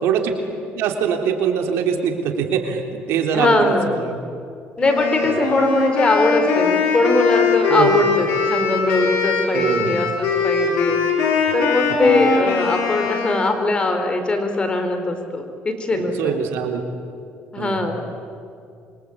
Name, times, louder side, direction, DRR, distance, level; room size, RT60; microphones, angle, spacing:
voice 1, 0.0-0.4 0.7-4.2 5.2-5.4 7.7-8.1 9.5-9.9 15.9-16.8 17.6-17.9, right 7 dB, 80° right, 4 dB, 3.5 m, -23 dB
voice 2, 3.3-4.1 4.8-11.0 11.5-16.4 17.5-18.1, left 2 dB, 25° left, 6 dB, 4.1 m, -21 dB
Wind instrument woodwind instrument, 4.8-13.6, left 5 dB, 80° left, 6.5 m, -21 dB
27.0 x 24.5 x 8.6 m, 2.4 s
cardioid pair, 110°, 4 cm